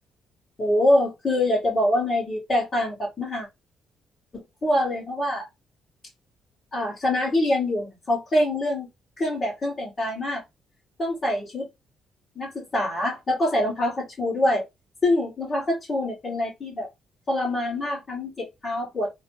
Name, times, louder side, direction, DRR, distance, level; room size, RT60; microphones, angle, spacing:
voice 1, 0.6-3.5 4.3-5.4 6.7-8.9 9.2-10.4 11.0-11.7 12.3-14.6 15.0-16.9 17.3-19.1, left 1 dB, 35° left, 1.7 m, -25 dB
3.1 x 2.1 x 3.1 m
cardioid pair, 90°, 0 cm